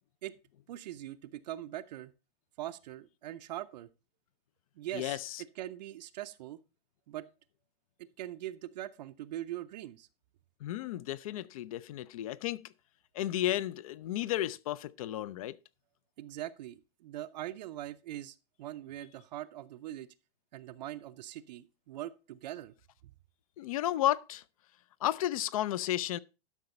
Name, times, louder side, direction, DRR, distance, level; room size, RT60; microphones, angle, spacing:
voice 1, 0.7-2.1 2.6-3.9 4.8-5.2 5.6-6.6 7.1-7.3 8.2-10.1 16.2-20.1 20.5-22.7 23.0-23.1, right 13 dB, 45° right, 0.5 m, -42 dB
voice 2, 4.9-5.4 10.6-12.7 13.1-15.6 23.6-24.4 25.0-26.2, left 13 dB, 40° left, 0.4 m, -33 dB
11.5 x 6.0 x 4.1 m
hypercardioid pair, 155°, 30 cm